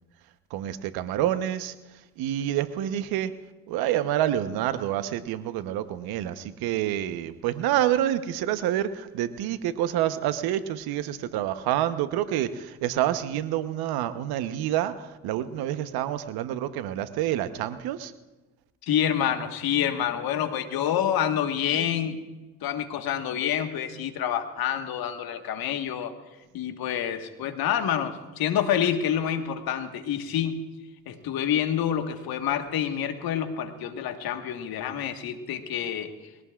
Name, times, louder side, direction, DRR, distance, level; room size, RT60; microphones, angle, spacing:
voice 1, 0.5-1.7 2.2-3.3 3.7-18.1, right 12 dB, 75° right, 11 dB, 1.1 m, -28 dB
voice 2, 18.8-22.2 22.6-26.1 26.5-30.6 31.1-36.1, left 9 dB, 70° left, 7 dB, 1.6 m, -27 dB
22.0 x 17.0 x 2.5 m, 1.1 s
hypercardioid pair, 50°, 37 cm